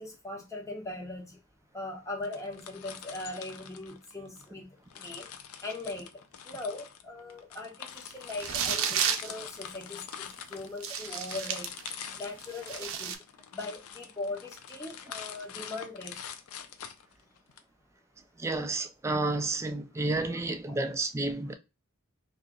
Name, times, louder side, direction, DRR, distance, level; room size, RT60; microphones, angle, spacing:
voice 1, 0.0-1.4 1.7-4.7 4.9-5.3 5.6-6.1 6.4-11.7 12.2-13.1 13.5-16.2 20.7-20.8, left 2 dB, 15° left, 0.8 m, -40 dB
sound 1, 2.2-4.5 4.9-17.6, left 8 dB, 80° left, 0.4 m, -45 dB
sound 2, 8.3-9.3 10.1-10.2 10.8-12.0 12.4-13.1, right 8 dB, 65° right, 0.5 m, -31 dB
voice 2, 18.4-21.5, right 2 dB, 15° right, 0.3 m, -31 dB
2.8 x 2.4 x 3.7 m
head